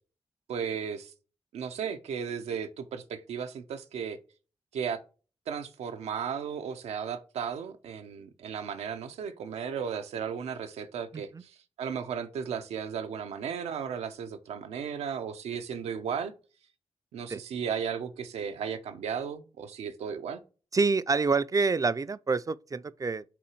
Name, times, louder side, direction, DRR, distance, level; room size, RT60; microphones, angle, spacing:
voice 1, 0.5-1.1 1.5-4.2 4.7-5.0 5.5-16.3 17.1-20.4, right 7 dB, 90° right, 0.6 m, -35 dB
voice 2, 20.7-23.2, right 4 dB, 35° right, 0.4 m, -27 dB
5.9 x 4.0 x 4.6 m
supercardioid pair, 45°, 11 cm